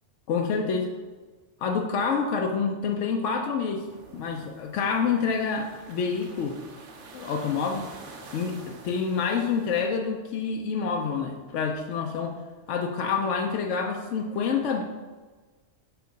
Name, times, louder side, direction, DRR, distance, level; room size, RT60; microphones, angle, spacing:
voice 1, 0.3-0.9 1.6-3.9 4.1-6.6 7.1-7.9 8.3-12.4 12.7-14.8, left 5 dB, 85° left, 2 dB, 0.9 m, -27 dB
sound 1, 3.9-9.9, right 3 dB, 90° right, 1.1 m, -47 dB
4.6 x 4.5 x 5.2 m, 1.3 s
omnidirectional pair, 1.2 m